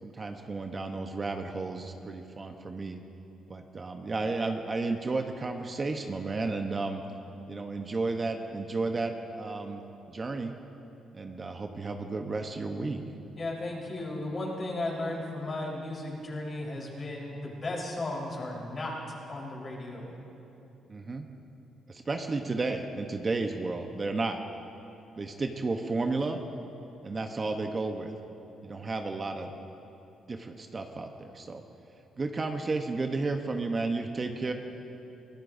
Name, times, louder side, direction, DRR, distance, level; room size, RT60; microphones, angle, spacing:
voice 1, 0.0-3.0 3.5-7.0 7.5-9.8 10.1-10.5 11.1-13.0 20.9-21.3 21.9-24.4 25.2-26.4 27.0-28.1 28.6-29.5 30.3-31.6 32.2-34.5, right 3 dB, 30° right, 4 dB, 0.9 m, -32 dB
voice 2, 13.3-20.1, left 2 dB, 35° left, -3 dB, 4.2 m, -35 dB
24.0 x 16.5 x 2.7 m, 2.9 s
cardioid pair, 90°, 0 cm